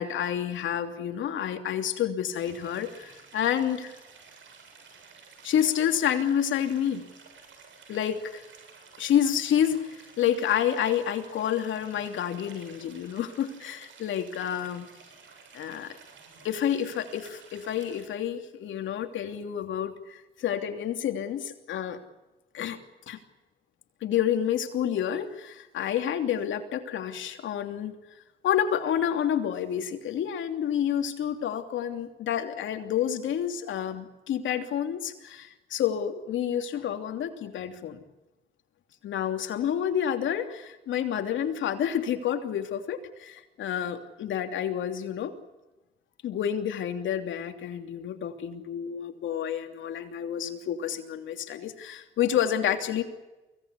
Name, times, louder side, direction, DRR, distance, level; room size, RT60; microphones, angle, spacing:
voice 1, 0.0-4.0 5.4-7.1 7.9-8.4 9.0-14.9 15.5-15.9 16.4-22.0 22.5-22.8 23.1-23.2 24.0-27.9 28.4-38.0 39.0-45.3 46.2-53.0, left 9 dB, 75° left, 6 dB, 3.0 m, -29 dB
Stream, 2.3-18.1, right 5 dB, 70° right, 7.6 m, -52 dB
24.0 x 18.0 x 9.7 m, 1.1 s
cardioid pair, 90°, 20 cm